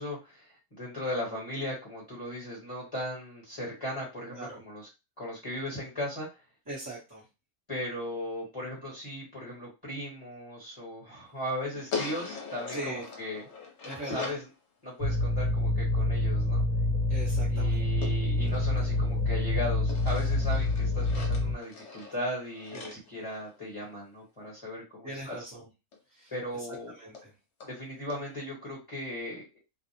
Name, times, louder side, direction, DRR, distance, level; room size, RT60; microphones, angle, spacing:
voice 1, 0.0-4.9 5.2-6.4 7.7-13.4 14.0-14.5 14.8-16.6 17.5-25.4 26.3-26.9 27.6-29.6, left 1 dB, 25° left, -5 dB, 1.1 m, -37 dB
voice 2, 6.7-7.2 12.7-13.0 13.8-14.4 17.1-17.8 22.7-23.0 25.0-25.7 26.1-26.3 27.0-27.3, right 2 dB, 20° right, -9 dB, 0.8 m, -40 dB
sound 1, 11.9-14.5 18.0-19.4 19.9-24.0 25.9-26.0 26.3-26.4 26.7-26.8 27.1-27.3 27.6-27.7 28.1-28.2, left 5 dB, 60° left, 1.0 m, -41 dB
sound 2, 15.0-21.5, left 2 dB, 65° right, 0.8 m, -27 dB
2.6 x 2.0 x 2.8 m, 0.27 s
omnidirectional pair, 1.4 m